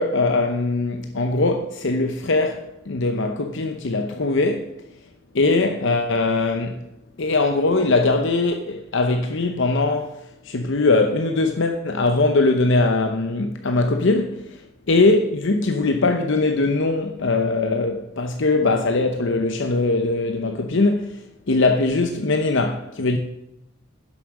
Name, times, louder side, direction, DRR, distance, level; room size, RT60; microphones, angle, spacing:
voice 1, 0.0-4.7 5.3-6.8 7.2-10.1 10.4-14.6 14.9-23.2, left 3 dB, 60° left, 0.8 m, -21 dB
11.0 x 7.4 x 6.4 m
head